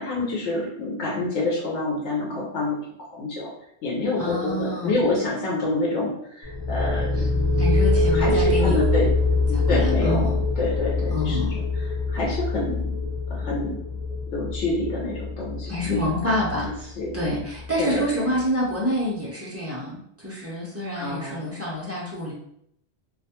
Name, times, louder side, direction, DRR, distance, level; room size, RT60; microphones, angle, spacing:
voice 1, 0.0-2.8 3.1-3.5 3.8-7.2 8.1-9.1 9.7-12.8 13.3-13.8 14.3-17.1 17.8-18.3 21.0-21.5, left 2 dB, 90° left, -4 dB, 0.9 m, -28 dB
voice 2, 4.2-5.0 7.6-8.8 9.5-10.4 11.1-11.6 15.6-16.9 17.1-22.3, equal, 25° right, -6 dB, 0.3 m, -27 dB
sound 1, 6.4-18.0, left 3 dB, 55° left, 0.3 m, -24 dB
2.3 x 2.1 x 2.7 m, 0.72 s
omnidirectional pair, 1.2 m